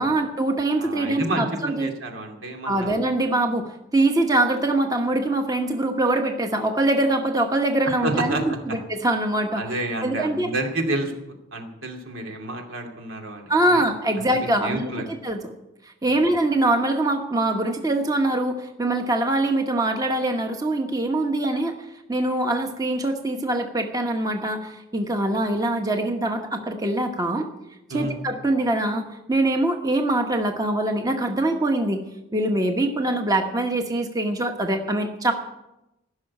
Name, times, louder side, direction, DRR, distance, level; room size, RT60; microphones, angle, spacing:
voice 1, 0.0-1.9 2.6-9.6 10.0-10.5 13.5-15.5 15.8-27.5 27.9-32.0 32.3-35.3, right 1 dB, 20° right, 4 dB, 1.0 m, -23 dB
voice 2, 0.7-3.0 8.0-8.6 9.6-11.1 11.5-13.8 14.2-15.0 16.1-16.2 27.9-28.2, right 2 dB, 85° right, 2 dB, 2.6 m, -30 dB
16.0 x 6.4 x 9.7 m, 0.93 s
head